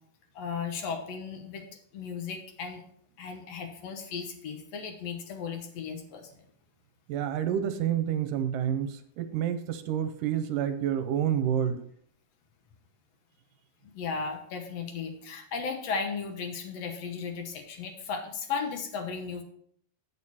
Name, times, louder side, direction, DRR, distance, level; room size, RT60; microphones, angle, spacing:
voice 1, 0.4-1.6 1.9-2.8 3.2-6.3 13.8-19.4, left 5 dB, 65° left, 5 dB, 1.8 m, -35 dB
voice 2, 7.1-11.8, right 9 dB, 75° right, 9 dB, 2.2 m, -29 dB
8.5 x 6.8 x 4.2 m, 0.65 s
omnidirectional pair, 4.0 m